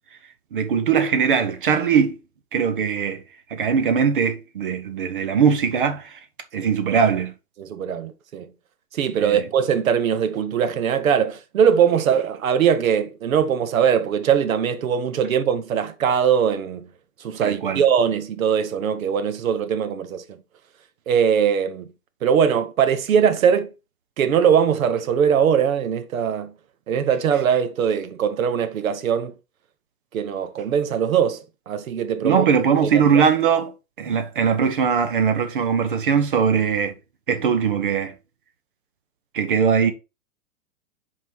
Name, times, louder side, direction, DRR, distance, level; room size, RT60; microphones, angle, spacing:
voice 1, 0.5-2.2 2.5-3.2 3.5-6.1 6.5-7.3 9.2-9.4 17.4-17.8 32.2-33.7 34.0-36.9 37.3-38.1 39.3-39.9, right 6 dB, 35° right, 0.8 m, -20 dB
voice 2, 7.6-8.5 8.9-16.9 17.2-20.4 21.1-21.9 22.2-23.7 24.2-26.5 26.9-29.3 30.1-32.5 32.8-33.2 34.1-34.2, right 8 dB, 60° right, 1.1 m, -21 dB
5.7 x 4.6 x 4.5 m
hypercardioid pair, 180°, 47 cm